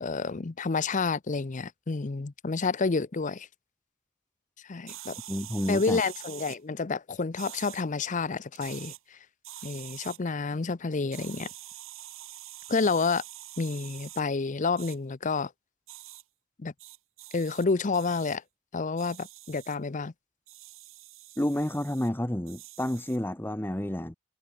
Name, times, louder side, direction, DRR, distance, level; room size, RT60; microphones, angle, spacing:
voice 1, 0.0-3.5 4.6-5.2 5.7-9.2 9.6-11.5 12.7-13.2 13.6-15.5 16.6-16.7 17.3-18.4 18.7-20.1, left 4 dB, 35° left, 0.6 m, -29 dB
sound 1, 4.9-6.6 7.4-7.8 8.5-9.0 9.4-10.2 11.1-14.2 14.8-15.0 15.9-16.2 16.8-17.7 17.9-18.4 19.0-19.8 20.5-22.1 22.5-23.2, right 14 dB, 65° right, 2.8 m, -45 dB
voice 2, 5.3-6.0 21.4-24.1, left 1 dB, 10° left, 0.9 m, -30 dB
head